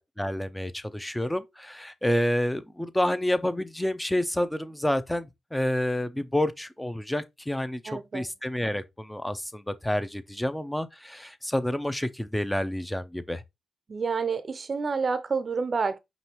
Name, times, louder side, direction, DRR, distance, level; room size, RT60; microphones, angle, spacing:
voice 1, 0.2-13.4, left 1 dB, 10° left, 0.7 m, -29 dB
voice 2, 7.9-8.3 13.9-16.0, right 5 dB, 50° right, 0.7 m, -29 dB
5.3 x 3.1 x 3.0 m
supercardioid pair, 55°, 0 cm